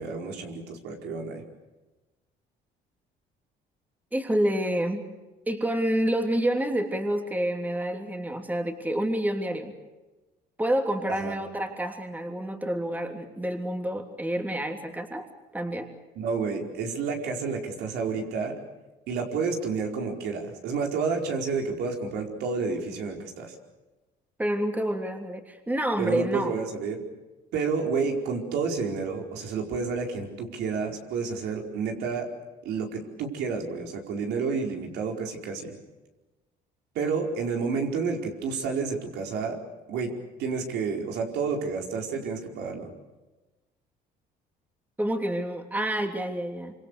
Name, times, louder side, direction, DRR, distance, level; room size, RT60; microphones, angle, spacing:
voice 1, 0.0-1.4 11.2-11.3 16.1-18.5 19.1-23.5 26.0-27.0 27.5-32.3 32.6-35.8 36.9-39.6 39.9-40.1 40.4-42.9, right 5 dB, 80° right, 2 dB, 4.8 m, -30 dB
voice 2, 4.1-5.0 5.5-9.7 10.6-15.3 15.5-15.9 24.4-26.6 45.0-46.7, right 1 dB, 10° right, 4 dB, 3.0 m, -28 dB
26.5 x 26.0 x 6.7 m, 1.1 s
cardioid pair, 110°, 17 cm